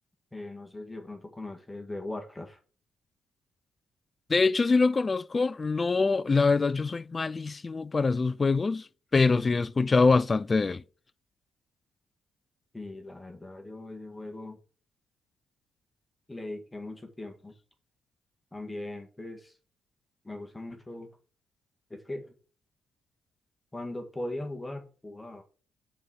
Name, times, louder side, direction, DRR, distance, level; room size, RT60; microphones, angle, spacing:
voice 1, 0.3-2.6 9.1-9.6 12.7-14.6 16.3-17.5 18.5-19.6 20.2-21.1 21.9-22.3 23.7-25.4, left 2 dB, 15° left, 1.6 m, -39 dB
voice 2, 4.3-8.9 9.1-10.8, left 4 dB, 30° left, 0.3 m, -24 dB
6.8 x 4.2 x 6.3 m
cardioid pair, 90°, 0 cm